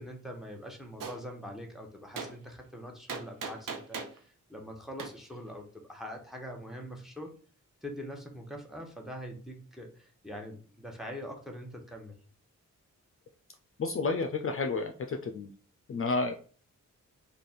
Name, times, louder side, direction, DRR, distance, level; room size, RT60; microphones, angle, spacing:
voice 1, 0.0-7.3 7.8-12.2, equal, ahead, 1 dB, 0.9 m, -43 dB
Gunshot gunfire, 1.0-1.2 2.2-2.3 3.1-4.2 5.0-5.1, right 5 dB, 85° right, 0.7 m, -38 dB
voice 2, 13.8-15.5 15.9-16.3, left 3 dB, 45° left, 5 dB, 0.4 m, -31 dB
3.3 x 2.4 x 4.0 m, 0.41 s
wide cardioid pair, 80°, 32 cm